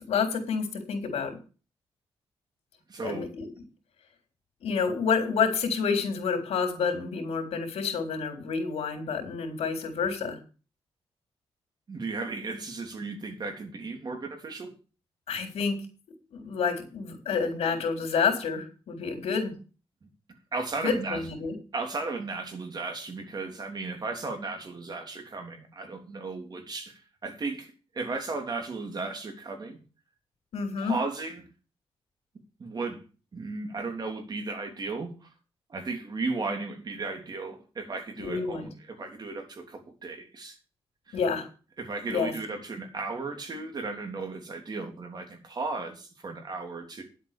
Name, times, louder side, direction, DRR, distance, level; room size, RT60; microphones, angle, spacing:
voice 1, 0.1-1.4 3.0-3.5 4.6-10.4 15.3-15.8 16.3-19.5 20.8-21.5 30.5-31.0 38.2-38.7 41.1-41.5 42.1-42.3, left 5 dB, 90° left, 5 dB, 3.7 m, -29 dB
voice 2, 2.9-3.3 11.9-14.7 20.5-21.2 21.7-29.8 30.8-31.5 32.6-33.0 33.3-35.3 35.7-40.6 41.1-41.2 41.8-47.0, right 3 dB, 40° right, 3 dB, 3.4 m, -35 dB
10.5 x 8.1 x 6.8 m, 0.35 s
wide cardioid pair, 120°, 11 cm